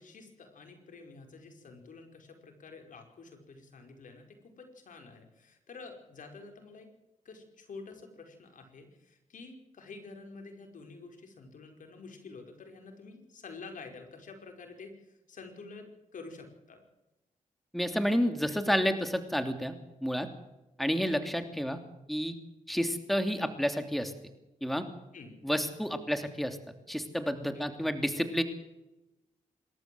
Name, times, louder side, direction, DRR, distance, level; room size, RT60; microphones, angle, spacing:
voice 1, 0.0-6.9 7.2-16.8 25.1-25.4 27.5-27.7, left 4 dB, 70° left, 4 dB, 5.0 m, -49 dB
voice 2, 17.7-19.7 20.0-20.3 20.8-21.8 22.1-22.3 22.7-24.1 24.6-24.9 25.4-26.6 26.9-28.4, equal, ahead, 8 dB, 2.9 m, -30 dB
26.0 x 13.0 x 7.8 m, 0.96 s
cardioid pair, 55°, 14 cm